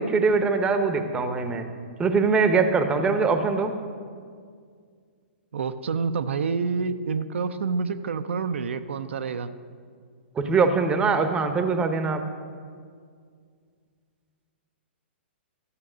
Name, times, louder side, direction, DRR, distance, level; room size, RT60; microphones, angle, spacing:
voice 1, 0.0-1.7 2.0-3.7 10.4-12.2, right 4 dB, 15° right, 8 dB, 0.7 m, -22 dB
voice 2, 5.5-9.5, right 5 dB, 80° right, 9 dB, 0.5 m, -28 dB
12.5 x 7.0 x 6.1 m, 2.1 s
hypercardioid pair, 140°, 6 cm